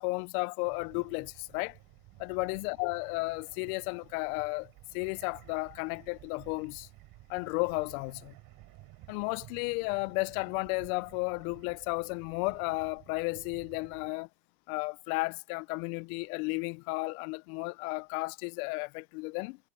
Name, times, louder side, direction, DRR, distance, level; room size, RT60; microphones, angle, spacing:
voice 1, 0.0-1.8 2.2-6.9 7.3-8.3 9.1-14.3 14.7-19.6, left 28 dB, 75° left, 0.6 m, -33 dB
sound 1, 0.6-14.1, right 19 dB, 55° right, 4.1 m, -54 dB
supercardioid pair, 140°, 43 cm